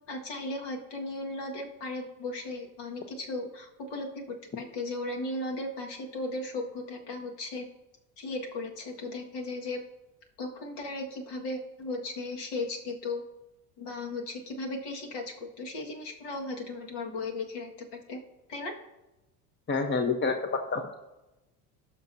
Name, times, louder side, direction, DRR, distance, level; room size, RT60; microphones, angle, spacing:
voice 1, 0.1-7.7 8.2-9.8 10.4-13.2 13.8-18.2 18.5-18.7, left 2 dB, 65° left, 1 dB, 1.9 m, -36 dB
voice 2, 19.7-21.0, left 4 dB, 25° left, 5 dB, 1.0 m, -28 dB
18.0 x 6.1 x 2.7 m, 0.99 s
supercardioid pair, 90°, 43 cm